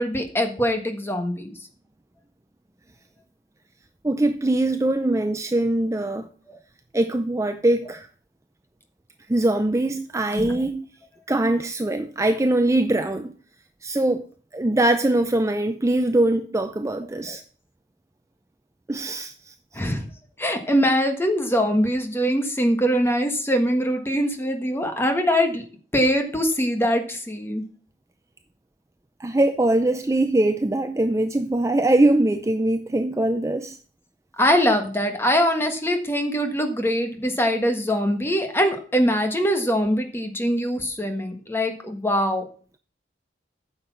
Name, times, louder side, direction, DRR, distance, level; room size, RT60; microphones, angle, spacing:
voice 1, 0.0-1.5 10.3-10.5 17.3-17.4 19.7-20.1 20.4-25.6 25.9-27.6 34.4-42.5, equal, 15° left, 1.4 m, -23 dB
voice 2, 4.0-6.3 6.9-8.1 9.3-10.8 11.3-13.3 13.8-14.2 14.5-17.4 18.9-19.5 29.2-33.8, right 1 dB, 15° right, 0.5 m, -22 dB
9.7 x 6.8 x 5.8 m
head